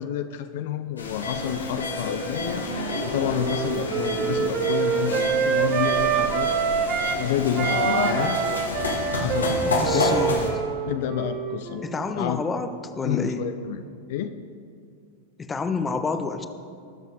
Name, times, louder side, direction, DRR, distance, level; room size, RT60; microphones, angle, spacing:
voice 1, 0.0-6.5 7.2-8.4 9.1-10.5 10.9-11.8 12.1-12.4 13.0-14.4, left 10 dB, 55° left, 9 dB, 0.5 m, -29 dB
sound 1, 1.0-10.5, left 2 dB, 70° left, 1.8 m, -28 dB
Wind instrument woodwind instrument, 2.7-7.2 7.5-12.0, right 8 dB, 35° right, 0.7 m, -26 dB
voice 2, 9.6-10.4 11.8-13.4 15.4-16.5, left 4 dB, 15° left, 8 dB, 0.8 m, -28 dB
20.5 x 7.3 x 4.0 m, 2.4 s
figure-of-eight pair, 90°, 0 cm